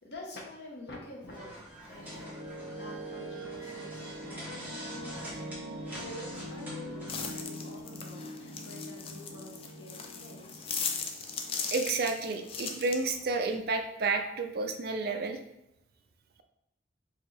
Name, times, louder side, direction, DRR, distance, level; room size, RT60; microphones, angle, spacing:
voice 1, 0.0-2.3 2.7-10.7, left 1 dB, 65° left, -1 dB, 0.9 m, -48 dB
sound 1, 1.3-7.4, equal, 10° right, 1.3 m, -45 dB
sound 2, 1.6-12.4, right 1 dB, 85° right, 0.8 m, -43 dB
sound 3, 7.1-13.5, left 5 dB, 30° left, 0.4 m, -38 dB
voice 2, 11.7-15.4, right 3 dB, 55° right, 6 dB, 0.4 m, -31 dB
4.7 x 2.7 x 3.2 m, 0.84 s
head